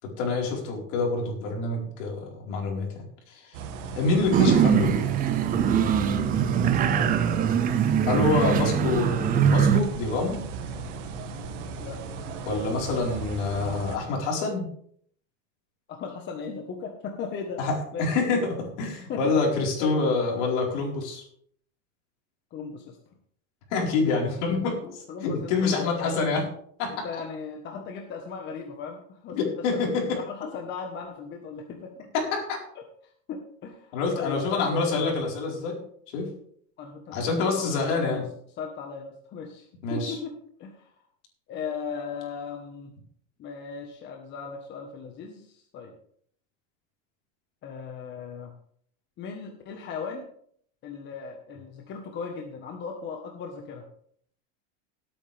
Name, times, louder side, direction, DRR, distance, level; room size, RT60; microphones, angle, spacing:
voice 1, 0.0-3.6 3.9-5.0 8.0-10.4 12.4-14.7 17.6-21.2 23.7-26.5 26.8-27.1 29.3-30.2 32.1-32.6 33.9-35.8 36.1-36.3 37.1-38.2 39.8-40.2, left 3 dB, 65° left, 0 dB, 4.6 m, -27 dB
sound 1, 3.5-14.0, right 4 dB, 70° right, 2.1 m, -36 dB
sound 2, 4.3-9.8, right 8 dB, 25° right, 0.6 m, -22 dB
voice 2, 6.7-7.1 11.8-12.0 15.9-17.6 17.9-18.1 19.1-19.4 19.8-20.0 22.5-23.0 24.8-26.2 27.0-31.9 33.3-35.1 36.8-38.2 38.6-39.6 39.9-40.3 40.6-40.9 41.5-42.9 43.4-45.9 47.6-48.5 49.2-50.3 50.8-53.8, left 5 dB, 30° left, 3 dB, 1.3 m, -37 dB
17.5 x 8.8 x 3.5 m, 0.63 s
supercardioid pair, 160°, 38 cm